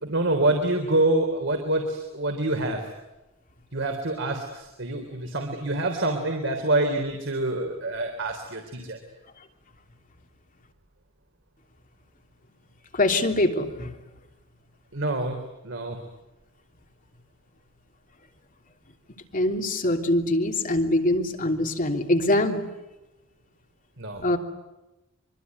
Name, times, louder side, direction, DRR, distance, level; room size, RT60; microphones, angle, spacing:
voice 1, 0.0-2.9 3.7-9.0 14.9-16.0 24.0-24.2, right 2 dB, 65° right, 4 dB, 3.6 m, -26 dB
voice 2, 12.9-14.0 19.3-22.6 24.2-24.4, left 1 dB, 40° left, 4 dB, 3.2 m, -23 dB
25.5 x 24.5 x 9.7 m, 1.0 s
head